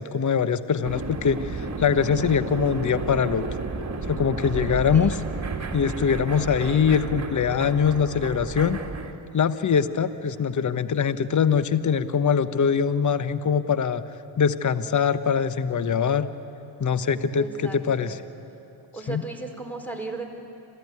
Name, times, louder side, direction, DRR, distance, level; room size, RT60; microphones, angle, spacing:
voice 1, 0.0-3.4 4.1-5.1 5.7-8.8 9.3-14.0 14.4-16.3 16.8-18.2 19.1-19.2, left 7 dB, 35° left, 13 dB, 1.1 m, -23 dB
sound 1, 0.8-9.1, right 3 dB, 30° right, 2.5 m, -32 dB
voice 2, 6.3-6.9 17.3-18.1 18.9-20.2, right 3 dB, 5° left, 3 dB, 4.8 m, -36 dB
26.5 x 16.5 x 9.5 m, 2.9 s
hypercardioid pair, 50°, 50 cm